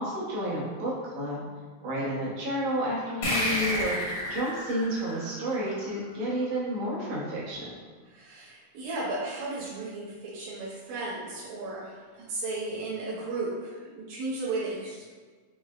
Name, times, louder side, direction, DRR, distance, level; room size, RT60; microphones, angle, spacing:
voice 1, 0.0-1.5 1.8-7.7, equal, 70° right, -7 dB, 2.3 m, -31 dB
sound 1, 3.2-6.3, left 1 dB, 55° left, 1.4 m, -31 dB
voice 2, 8.1-15.0, right 2 dB, 85° right, -5 dB, 2.2 m, -35 dB
5.5 x 3.2 x 2.4 m, 1.5 s
omnidirectional pair, 3.4 m